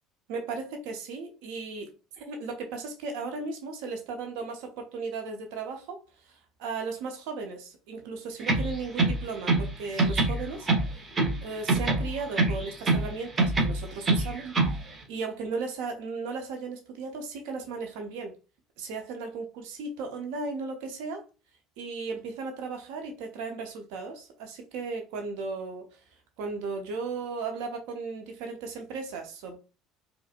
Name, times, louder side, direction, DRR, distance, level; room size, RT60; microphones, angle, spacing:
voice 1, 0.3-10.7 11.4-14.8 15.1-18.3 18.8-21.2 21.8-26.0 26.4-29.6, right 4 dB, 60° right, 0.7 m, -36 dB
sound 1, 8.4-9.7 10.0-11.4 11.7-13.1 13.4-14.8, right 2 dB, 25° right, 0.9 m, -25 dB
4.8 x 2.1 x 2.4 m
figure-of-eight pair, 65°, 0 cm